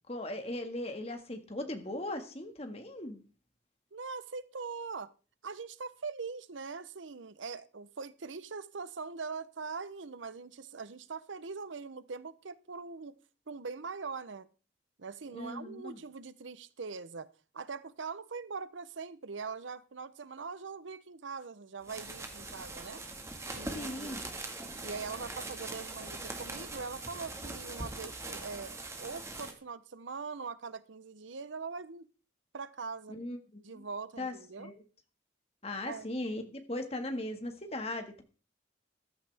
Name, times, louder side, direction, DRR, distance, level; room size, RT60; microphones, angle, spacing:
voice 1, 0.1-3.2 15.3-16.0 23.7-24.3 33.1-33.8 34.2-34.8 35.6-38.2, left 1 dB, 30° left, 1.8 m, -38 dB
voice 2, 3.9-5.1 5.4-13.2 13.5-14.5 15.0-23.0 23.5-24.1 24.8-32.1 32.5-33.2 33.6-34.7 35.8-36.1, right 4 dB, 85° right, 0.8 m, -42 dB
sound 1, 21.8-29.5, right 2 dB, 15° right, 1.7 m, -42 dB
14.5 x 13.0 x 3.5 m
head